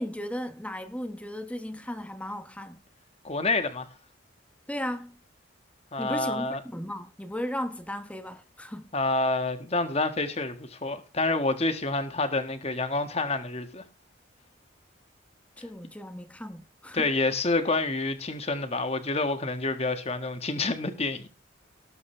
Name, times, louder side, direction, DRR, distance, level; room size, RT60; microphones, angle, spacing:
voice 1, 0.0-2.8 4.7-5.2 6.0-8.9 15.6-17.1, equal, 5° left, 1.1 m, -36 dB
voice 2, 3.2-3.9 5.9-6.6 8.9-13.8 16.9-21.3, left 3 dB, 30° left, 1.7 m, -28 dB
18.5 x 8.1 x 3.4 m
head